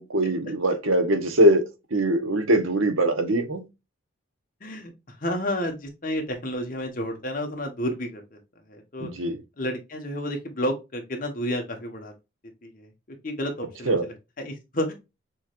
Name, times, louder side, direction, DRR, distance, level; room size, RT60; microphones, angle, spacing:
voice 1, 0.0-1.6 1.9-3.6 9.0-9.4 13.9-14.0, right 1 dB, 80° right, 1.1 m, -22 dB
voice 2, 4.6-8.4 8.7-9.1 9.6-12.1 12.6-14.9, equal, 40° left, 1.3 m, -31 dB
6.3 x 3.2 x 2.5 m
head